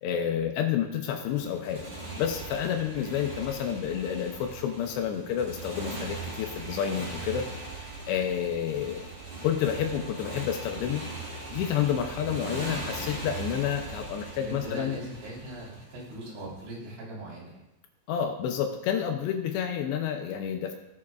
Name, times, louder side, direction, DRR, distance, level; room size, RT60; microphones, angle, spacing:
voice 1, 0.0-1.9 2.2-7.5 8.1-9.0 9.4-11.0 11.5-15.0 18.1-20.7, left 9 dB, 80° left, 4 dB, 2.7 m, -29 dB
Motorcycle, 1.3-16.4, right 2 dB, 30° right, 3.1 m, -39 dB
voice 2, 14.4-17.6, right 1 dB, 80° right, -6 dB, 5.8 m, -40 dB
16.5 x 6.8 x 2.4 m, 0.93 s
omnidirectional pair, 5.3 m